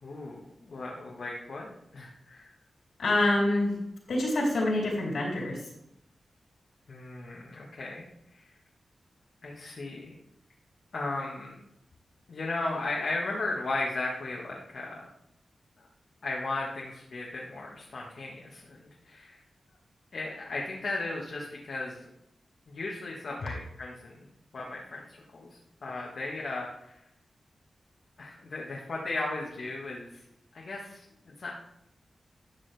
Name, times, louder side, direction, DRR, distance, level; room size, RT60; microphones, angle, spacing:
voice 1, 0.0-2.5 6.9-8.1 9.4-10.2 10.9-11.6 12.3-15.1 15.8-15.9 16.2-19.4 20.1-22.0 22.7-24.2 24.5-27.0 28.2-30.2 30.5-31.0 31.4-31.5, left 2 dB, 70° left, -3 dB, 1.5 m, -36 dB
voice 2, 3.0-3.8 4.1-5.7, left 1 dB, 85° left, -3 dB, 3.6 m, -26 dB
12.0 x 6.2 x 3.4 m, 0.80 s
cardioid pair, 70°, 0 cm